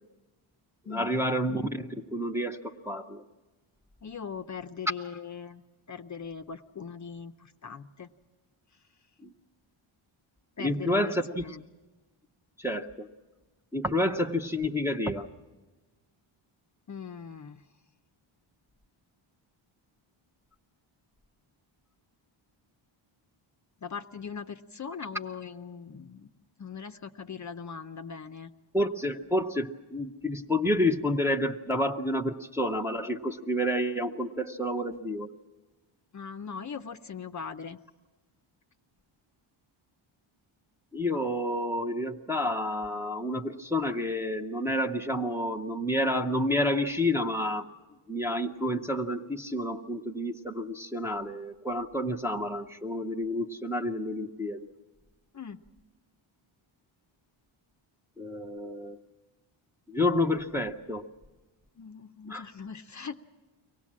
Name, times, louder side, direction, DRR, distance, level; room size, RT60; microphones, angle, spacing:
voice 1, 0.9-3.2 9.2-9.3 10.6-11.4 12.6-13.1 13.7-15.3 28.7-35.3 40.9-47.6 48.1-54.7 58.2-59.0 59.9-61.1 62.3-62.4, left 1 dB, 5° right, 2 dB, 0.7 m, -29 dB
voice 2, 4.0-5.6 5.9-8.1 10.6-11.6 16.9-17.6 23.8-26.3 26.6-28.5 36.1-37.8 55.3-55.6 61.8-63.2, left 6 dB, 35° left, 8 dB, 0.6 m, -40 dB
24.0 x 18.5 x 7.4 m, 1.2 s
wide cardioid pair, 145°, 49 cm